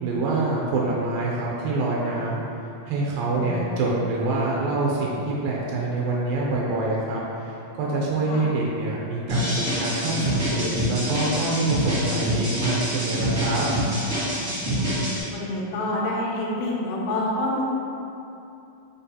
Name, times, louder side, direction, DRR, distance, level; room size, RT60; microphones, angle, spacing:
voice 1, 0.0-2.4 2.9-7.2 7.5-13.7, right 2 dB, 80° right, -4 dB, 2.2 m, -26 dB
voice 2, 3.3-3.8 8.3-8.5 14.8-17.6, left 1 dB, 80° left, -3 dB, 1.8 m, -28 dB
sound 1, 9.3-15.2, equal, 60° right, 0.8 m, -26 dB
5.9 x 2.4 x 2.7 m, 2.7 s
omnidirectional pair, 4.2 m